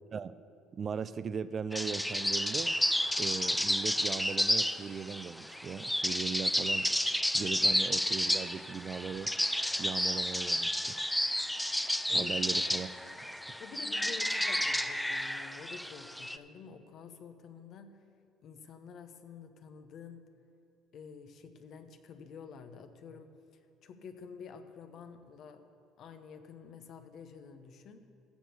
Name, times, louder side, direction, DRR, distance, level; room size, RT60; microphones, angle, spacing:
voice 1, 0.7-2.7 3.2-6.9 7.3-9.3 9.8-11.0 12.1-12.9 13.3-13.4, right 6 dB, 45° right, 14 dB, 0.4 m, -38 dB
sound 1, 1.7-16.4, left 1 dB, 5° left, 0.5 m, -31 dB
voice 2, 13.6-18.0 18.4-20.3 20.9-23.3 23.8-25.6 26.0-28.1, left 6 dB, 60° left, 8 dB, 1.0 m, -49 dB
15.5 x 6.1 x 6.9 m, 2.7 s
hypercardioid pair, 65°, 0 cm